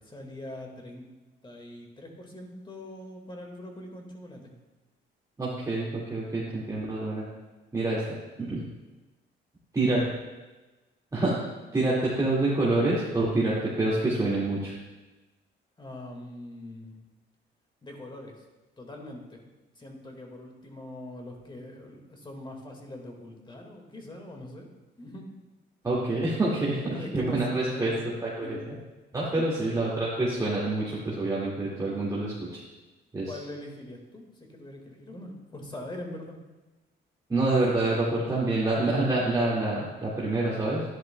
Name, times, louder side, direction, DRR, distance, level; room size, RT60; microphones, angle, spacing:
voice 1, 0.0-1.1 1.4-4.6 15.8-17.0 17.8-18.4 18.8-19.4 19.8-24.7 25.0-25.3 26.7-28.7 29.4-29.5 33.3-36.4, left 1 dB, 25° left, 2 dB, 1.8 m, -42 dB
voice 2, 5.4-7.2 7.7-8.0 8.4-8.6 9.7-10.0 11.1-11.4 11.7-14.7 25.8-28.7 29.1-32.3 33.1-33.3 37.3-40.8, right 2 dB, 20° right, -8 dB, 2.0 m, -27 dB
11.0 x 10.5 x 2.2 m, 1.2 s
cardioid pair, 90°, 20 cm